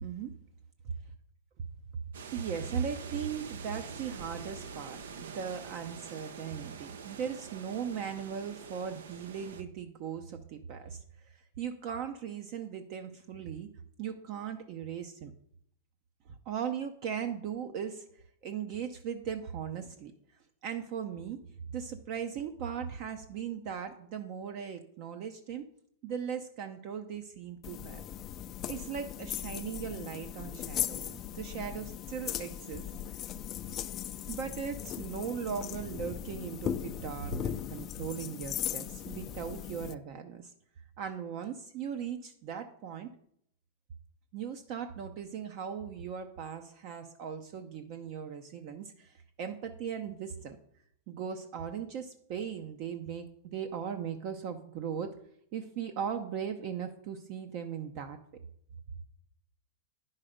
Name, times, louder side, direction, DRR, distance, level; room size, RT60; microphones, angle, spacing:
voice 1, 0.0-0.3 2.3-11.0 11.3-13.7 14.0-15.3 16.5-18.1 18.4-20.1 20.6-21.4 21.7-25.7 26.0-28.0 28.7-33.2 34.3-40.5 41.0-43.1 44.3-50.6 51.1-55.1 55.5-58.2, right 7 dB, 45° right, 7 dB, 0.7 m, -38 dB
sound 1, 2.1-9.6, right 5 dB, 85° right, 0.8 m, -46 dB
sound 2, 27.6-39.9, left 11 dB, 30° left, 0.4 m, -38 dB
9.9 x 5.7 x 5.0 m, 0.70 s
supercardioid pair, 140°, 0 cm